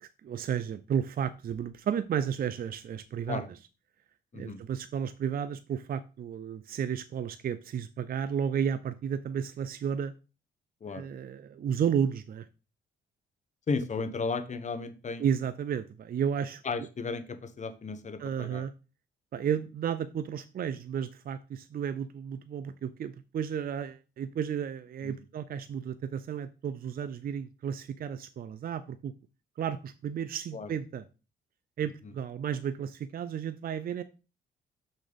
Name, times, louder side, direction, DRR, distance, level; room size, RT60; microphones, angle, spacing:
voice 1, 0.0-3.4 4.3-10.1 10.9-12.5 15.2-16.6 18.2-18.7 19.3-29.1 29.6-31.0 31.8-34.0, right 8 dB, 50° right, 12 dB, 0.5 m, -33 dB
voice 2, 13.7-15.3 16.6-18.6 25.0-25.2 30.5-30.7 32.0-32.1, left 4 dB, 35° left, 9 dB, 1.1 m, -34 dB
6.3 x 4.1 x 5.2 m, 0.31 s
cardioid pair, 90°, 20 cm